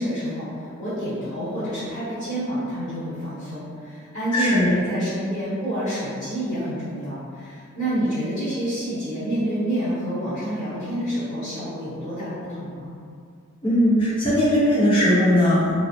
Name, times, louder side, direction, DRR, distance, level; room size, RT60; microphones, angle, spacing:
voice 1, 0.0-12.9, equal, 55° left, -14 dB, 1.1 m, -28 dB
voice 2, 4.3-4.7 13.6-15.7, equal, 25° left, -10 dB, 0.8 m, -19 dB
3.2 x 2.1 x 2.7 m, 2.3 s
head